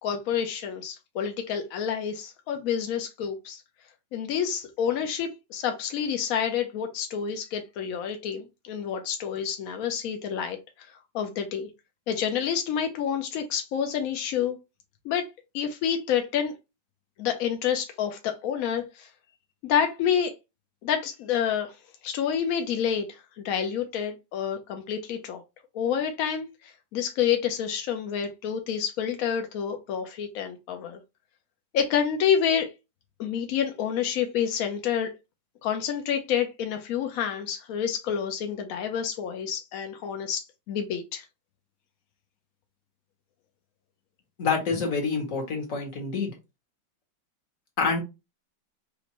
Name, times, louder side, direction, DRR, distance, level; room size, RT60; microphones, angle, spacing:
voice 1, 0.0-3.6 4.1-10.9 11.1-11.7 12.1-14.6 15.0-15.3 15.5-16.5 17.2-19.1 19.6-20.3 20.8-21.8 22.0-25.4 25.7-31.0 31.7-32.7 33.2-35.1 35.6-41.2, left 8 dB, 75° left, 0.8 m, -28 dB
voice 2, 44.4-46.3 47.8-48.0, left 4 dB, 50° left, 1.4 m, -27 dB
5.1 x 2.5 x 2.9 m
omnidirectional pair, 2.0 m